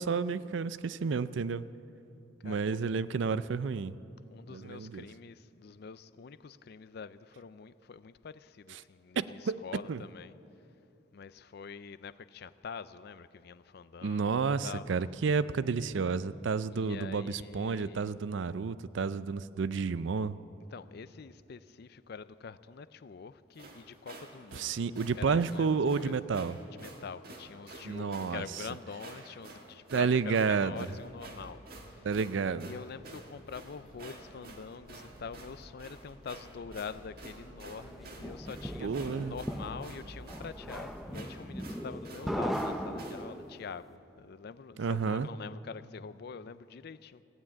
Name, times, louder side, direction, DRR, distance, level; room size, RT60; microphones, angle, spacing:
voice 1, 0.0-1.7 2.4-3.9 4.5-5.1 8.7-8.8 9.2-10.0 14.0-20.4 24.5-26.6 27.8-28.4 29.9-30.9 32.0-32.7 38.8-39.4 44.8-45.3, right 5 dB, 65° right, 0.4 m, -31 dB
voice 2, 2.4-2.8 4.3-10.4 11.1-14.9 16.7-18.1 20.7-26.2 26.8-31.6 31.9-32.1 32.6-47.2, left 5 dB, 50° left, 0.4 m, -45 dB
sound 1, 23.5-43.3, right 2 dB, 50° right, 1.8 m, -50 dB
Accelerating revving vroom, 30.4-40.9, equal, 30° right, 4.7 m, -54 dB
sound 2, 37.8-43.6, equal, ahead, 0.5 m, -38 dB
16.5 x 9.5 x 8.7 m
head